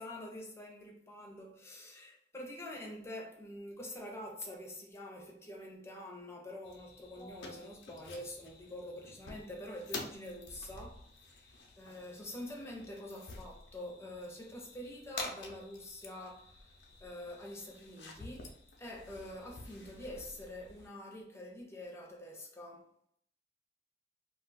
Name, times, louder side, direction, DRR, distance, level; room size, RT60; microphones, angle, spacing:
voice 1, 0.0-16.7 17.0-22.9, left 1 dB, 15° left, 0.6 m, -46 dB
sound 1, 6.6-20.9, left 3 dB, 90° left, 0.5 m, -49 dB
2.4 x 2.3 x 3.9 m
head